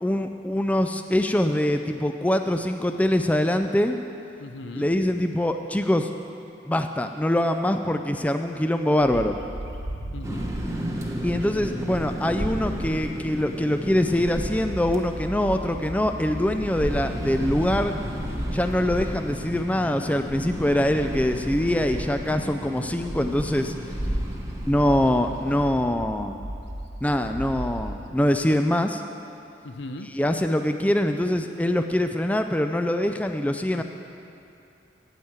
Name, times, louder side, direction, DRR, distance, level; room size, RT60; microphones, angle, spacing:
voice 1, 0.0-4.0 4.7-6.1 6.7-9.4 11.2-17.9 18.5-23.7 24.7-26.4 27.0-29.0 30.0-33.8, left 1 dB, 10° left, 7 dB, 0.3 m, -24 dB
voice 2, 4.4-4.9 10.1-10.5 29.6-30.1 33.7-33.8, left 2 dB, 80° left, 8 dB, 0.7 m, -37 dB
Bird, 9.0-13.5 13.9-28.1, right 1 dB, 80° right, 1.3 m, -38 dB
sound 1, 10.2-25.6, equal, 15° right, 1.0 m, -33 dB
9.1 x 8.8 x 7.9 m, 2.6 s
head